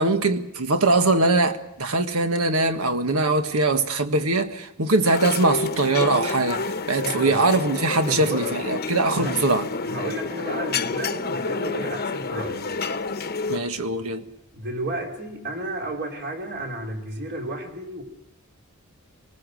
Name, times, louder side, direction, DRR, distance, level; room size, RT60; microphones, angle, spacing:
voice 1, 0.0-9.7 13.5-14.2, right 2 dB, 80° right, 1.6 m, -22 dB
sound 1, 5.0-13.6, left 4 dB, 45° left, 1.0 m, -29 dB
voice 2, 7.0-7.4 8.1-8.5 9.1-9.4 9.9-12.7 14.5-18.0, right 1 dB, 50° right, 3.8 m, -32 dB
25.0 x 19.5 x 6.4 m
head